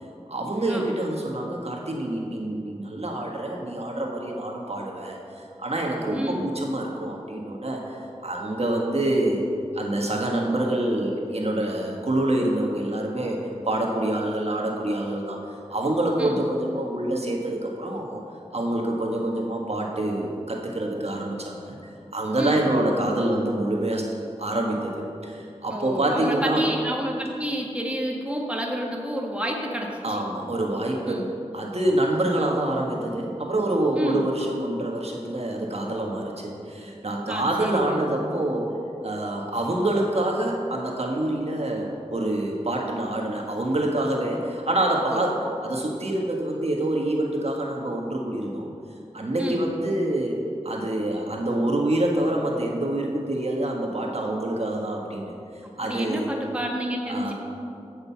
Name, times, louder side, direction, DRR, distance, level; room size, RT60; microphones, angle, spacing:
voice 1, 0.3-5.2 5.6-8.0 8.2-9.5 9.7-13.4 13.6-15.4 15.7-18.2 18.5-21.8 22.1-24.0 24.4-26.7 30.0-38.7 39.0-48.7 49.1-50.4 50.6-55.3 55.8-56.3 57.1-57.3, right 1 dB, 60° right, -1 dB, 1.6 m, -26 dB
voice 2, 6.1-6.5 16.2-16.4 22.4-22.6 25.7-30.2 31.1-31.3 34.0-34.2 37.3-38.0 45.1-45.3 49.4-49.6 55.8-57.3, equal, 10° right, -1 dB, 1.8 m, -29 dB
15.5 x 6.6 x 5.9 m, 2.5 s
wide cardioid pair, 70°, 12 cm